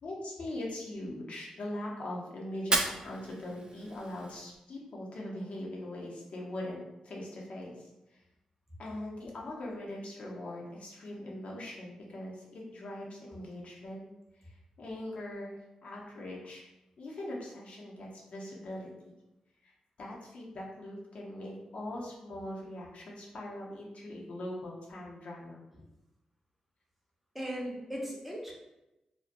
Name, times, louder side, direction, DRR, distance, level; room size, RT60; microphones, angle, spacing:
voice 1, 0.0-8.2 8.8-14.1 14.4-16.7 17.0-19.1 19.6-19.7 20.0-25.6, left 1 dB, 65° left, -3 dB, 0.7 m, -41 dB
Fire, 2.5-4.6, right 2 dB, 40° right, 0.4 m, -34 dB
voice 2, 27.3-28.5, equal, 5° right, -3 dB, 0.9 m, -37 dB
2.5 x 2.2 x 2.5 m, 0.93 s
supercardioid pair, 45°, 2 cm